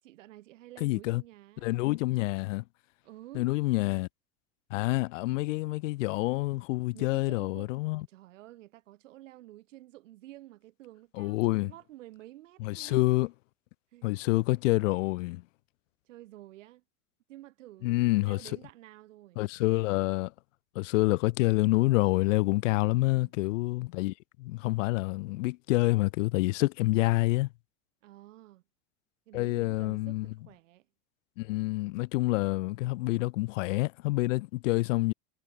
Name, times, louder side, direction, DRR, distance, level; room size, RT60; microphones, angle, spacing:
voice 1, 0.0-1.7 3.0-3.5 6.9-7.7 8.1-13.0 13.9-14.2 16.0-16.8 17.3-19.4 23.0-23.3 28.0-28.6 29.3-30.9, right 16 dB, 85° right, 7.6 m, -51 dB
voice 2, 0.8-1.2 1.6-2.6 3.3-4.1 4.7-8.1 11.2-11.7 12.6-13.3 14.0-15.4 17.8-18.4 19.4-20.3 20.8-27.5 29.3-30.3 31.4-35.1, left 21 dB, 85° left, 0.6 m, -27 dB
supercardioid pair, 150°, 37 cm